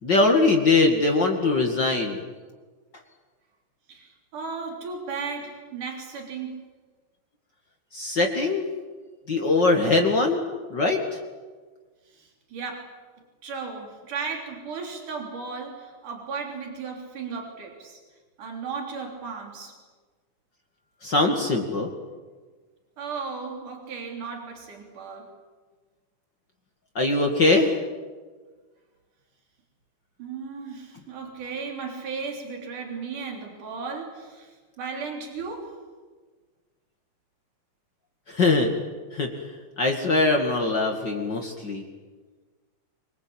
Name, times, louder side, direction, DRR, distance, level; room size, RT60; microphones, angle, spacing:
voice 1, 0.0-2.2 7.9-8.7 9.3-10.4 10.7-11.0 21.0-21.9 27.0-27.8 38.3-38.7 39.1-39.3 39.8-41.8, left 3 dB, 40° left, 2 dB, 2.5 m, -21 dB
voice 2, 3.9-6.6 9.9-10.0 12.1-12.9 13.4-18.0 18.4-19.7 23.0-25.3 30.2-35.7, right 5 dB, 90° right, 2 dB, 5.0 m, -35 dB
25.0 x 24.0 x 8.8 m, 1.4 s
omnidirectional pair, 3.5 m